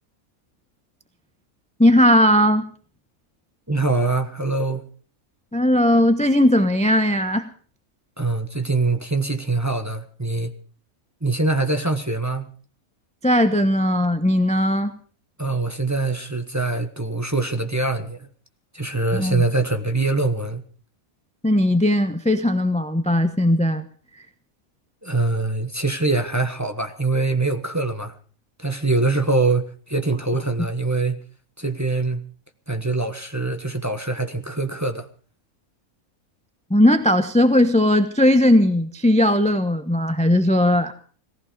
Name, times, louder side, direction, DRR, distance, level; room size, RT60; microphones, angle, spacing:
voice 1, 1.8-2.6 5.5-7.5 13.2-14.9 19.1-19.4 21.4-23.9 36.7-40.9, left 1 dB, 5° left, 0.8 m, -18 dB
voice 2, 3.7-4.9 8.2-10.5 11.2-12.4 15.4-18.3 18.7-20.6 25.0-28.1 28.6-31.2 31.6-32.2 32.7-35.1, right 3 dB, 15° right, 1.1 m, -23 dB
18.5 x 14.5 x 5.2 m
omnidirectional pair, 1.5 m